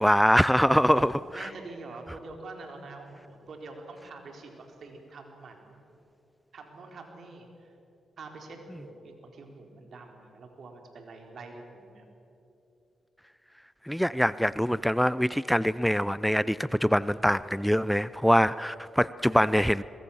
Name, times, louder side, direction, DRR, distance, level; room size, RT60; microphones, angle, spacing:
voice 1, 0.0-1.1 13.9-19.8, equal, ahead, 17 dB, 0.5 m, -23 dB
voice 2, 0.9-5.8 6.5-7.7 8.2-12.1, right 3 dB, 70° right, 3 dB, 4.0 m, -45 dB
22.5 x 22.0 x 7.2 m, 2.8 s
cardioid pair, 60°, 0 cm